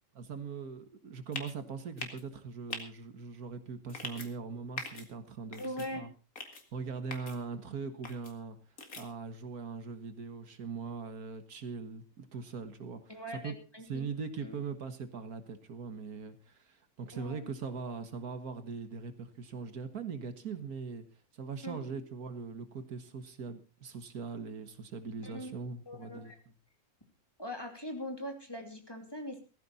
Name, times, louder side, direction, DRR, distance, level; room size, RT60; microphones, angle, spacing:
voice 1, 0.2-6.1 6.7-8.6 9.0-13.5 13.9-21.0 21.3-26.3, right 5 dB, 75° right, 9 dB, 1.9 m, -41 dB
sound 1, 1.3-1.5 2.0-2.2 2.7-2.8 3.9-4.3 4.8-5.1 5.5-5.9 6.4-6.6 7.1-7.4 8.0-8.3 8.8-9.0, left 3 dB, 70° left, 2.6 m, -41 dB
voice 2, 5.5-6.1 13.1-14.1 14.4-14.6 17.1-17.5 21.6-22.0 25.2-25.5 25.9-26.4 27.4-29.4, equal, 15° left, 3 dB, 2.9 m, -41 dB
17.0 x 14.0 x 4.1 m, 0.34 s
omnidirectional pair, 1.6 m